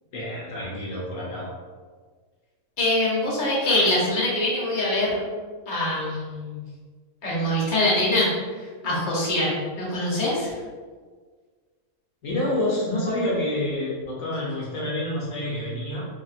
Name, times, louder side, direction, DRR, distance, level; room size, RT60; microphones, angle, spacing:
voice 1, 0.1-1.5 12.2-16.1, left 1 dB, 70° left, -5 dB, 1.2 m, -28 dB
voice 2, 2.8-5.2 5.7-6.6 7.2-10.6, left 1 dB, 40° left, -6 dB, 1.1 m, -24 dB
2.9 x 2.6 x 4.1 m, 1.5 s
omnidirectional pair, 1.5 m